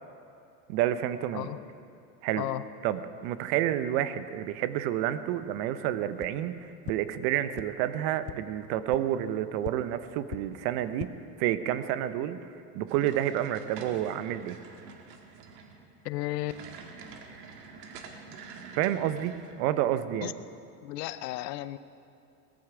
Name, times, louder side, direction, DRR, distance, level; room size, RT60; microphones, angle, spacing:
voice 1, 0.7-1.5 2.2-2.5 2.8-11.1 11.4-12.4 12.7-14.6 18.7-20.3, right 12 dB, 60° right, 12 dB, 1.0 m, -29 dB
voice 2, 2.4-2.7 16.0-16.5 20.2-20.3 20.8-21.8, left 16 dB, 80° left, 14 dB, 0.8 m, -33 dB
sound 1, 6.2-6.3 6.8-6.9 7.5-7.6 8.2-8.3 8.9-9.0 9.6-9.7 10.3-10.4 10.8-11.1, left 20 dB, 35° left, 0.4 m, -38 dB
sound 2, 12.9-19.5, right 5 dB, 75° right, 1.9 m, -47 dB
18.5 x 14.5 x 5.0 m, 2.6 s
supercardioid pair, 110°, 48 cm